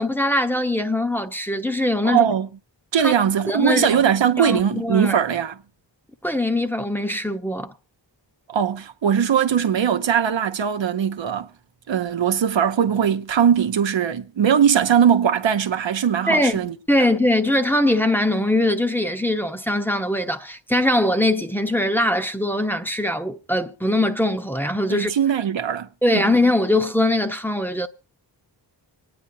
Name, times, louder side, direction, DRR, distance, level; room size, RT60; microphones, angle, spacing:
voice 1, 0.0-2.3 3.0-3.1 3.5-4.0 4.4-5.2 6.2-7.7 16.3-25.1 26.0-27.9, left 1 dB, 5° left, 0.9 m, -21 dB
voice 2, 2.0-2.5 2.9-5.6 8.5-11.5 11.9-16.7 24.9-25.9 26.1-26.2, right 8 dB, 85° right, 0.9 m, -20 dB
26.5 x 9.6 x 2.7 m
wide cardioid pair, 80°, 44 cm